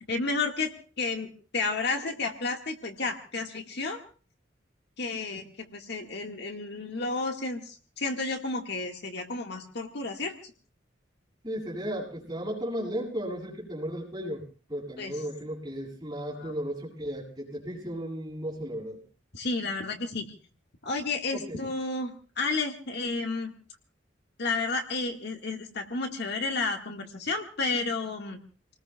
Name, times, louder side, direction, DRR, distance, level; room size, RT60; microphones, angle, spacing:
voice 1, 0.1-4.0 5.0-10.4 15.0-15.2 16.3-16.5 19.3-20.3 20.8-23.5 24.4-28.4, left 3 dB, 60° left, 3 dB, 1.7 m, -31 dB
voice 2, 11.4-14.4 14.7-19.0 21.3-21.6, equal, 20° right, -4 dB, 7.6 m, -35 dB
29.5 x 19.5 x 2.3 m, 0.39 s
head